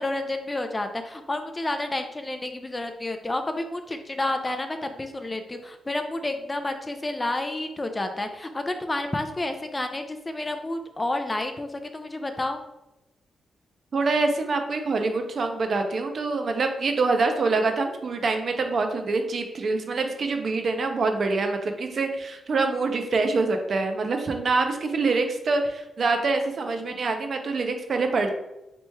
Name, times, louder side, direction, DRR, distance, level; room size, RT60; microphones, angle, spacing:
voice 1, 0.0-12.6, left 2 dB, 20° left, 6 dB, 0.4 m, -30 dB
voice 2, 13.9-28.4, right 3 dB, 50° right, 5 dB, 0.6 m, -25 dB
3.3 x 3.0 x 4.5 m, 0.95 s
cardioid pair, 120°, 0 cm